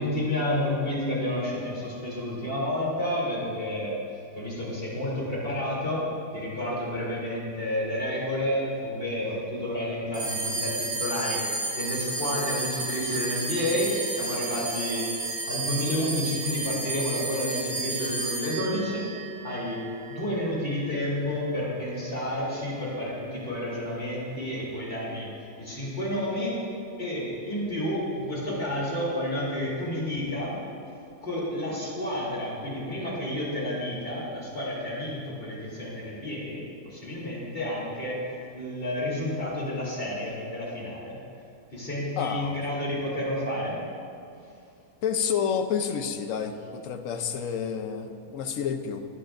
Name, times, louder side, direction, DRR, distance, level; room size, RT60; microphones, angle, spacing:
voice 1, 0.0-3.9 4.3-11.4 11.7-15.1 15.5-19.1 19.4-19.8 20.1-25.3 25.6-26.5 27.0-30.6 31.2-38.2 38.5-41.2 41.7-43.8, left 1 dB, 40° left, -6 dB, 3.4 m, -30 dB
sound 1, 10.1-20.8, right 2 dB, 85° right, 3.1 m, -32 dB
voice 2, 42.2-42.6 45.0-49.0, left 7 dB, 65° left, 7 dB, 1.1 m, -29 dB
19.0 x 10.5 x 2.6 m, 2.5 s
omnidirectional pair, 1.5 m